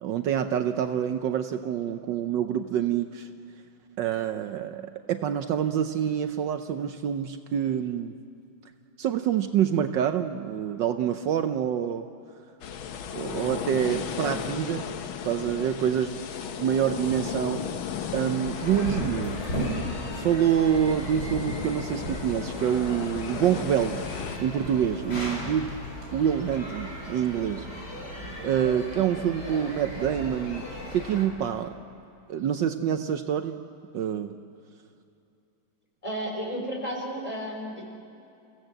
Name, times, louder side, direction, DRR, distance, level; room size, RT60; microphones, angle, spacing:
voice 1, 0.0-3.3 4.0-8.1 9.0-12.0 13.1-14.8 15.2-16.2 16.6-17.6 18.1-19.5 20.1-24.0 24.4-25.7 26.1-27.7 28.4-30.6 30.9-31.8 32.3-33.6 33.9-34.3, right 9 dB, 70° right, 7 dB, 1.4 m, -26 dB
sound 1, 12.6-24.4, left 7 dB, 85° left, 1.9 m, -35 dB
sound 2, 18.4-31.2, equal, 55° left, 5.3 m, -36 dB
voice 2, 36.0-37.8, equal, 15° left, -1 dB, 4.5 m, -32 dB
27.5 x 16.5 x 7.8 m, 2.7 s
omnidirectional pair, 2.2 m